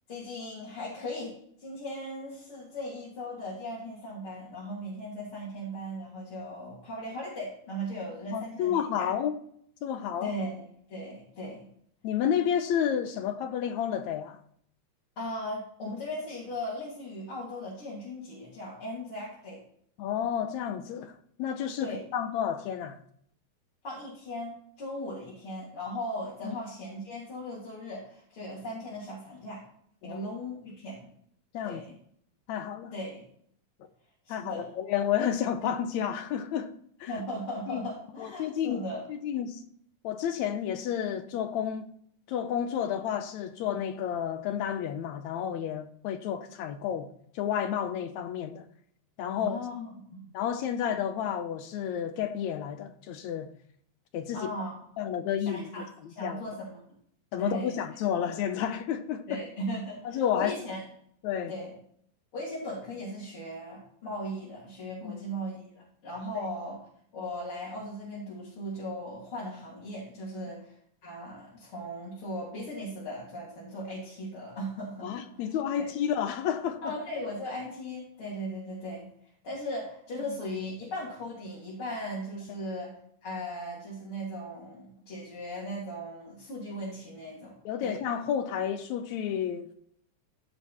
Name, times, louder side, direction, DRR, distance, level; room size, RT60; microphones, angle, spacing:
voice 1, 0.1-9.1 10.2-10.6 10.9-11.7 15.2-19.6 21.8-22.0 23.8-29.6 30.0-31.1 31.6-31.9 32.9-33.2 34.3-34.7 37.1-39.1 49.3-50.3 54.3-54.8 55.5-56.8 57.4-57.8 59.3-60.8 61.5-61.7 62.3-66.9 67.1-75.9 76.8-79.1 79.4-82.9 83.2-87.6 87.8-88.0, equal, 45° left, 3.6 m, -38 dB
voice 2, 8.3-9.3 9.8-10.3 12.0-14.4 20.0-23.0 26.4-26.6 30.0-30.2 31.5-31.8 32.5-32.9 34.3-36.7 37.0-37.1 37.7-37.8 38.2-38.8 39.1-39.6 40.0-41.9 42.3-47.1 47.4-48.6 49.2-49.6 50.3-53.5 54.1-54.5 55.0-55.7 56.2-56.4 57.3-59.4 60.1-60.5 61.2-61.5 65.0-65.2 66.3-66.5 75.0-76.9 87.7-89.7, left 9 dB, 75° left, 2.0 m, -31 dB
15.5 x 5.5 x 4.3 m
omnidirectional pair, 3.6 m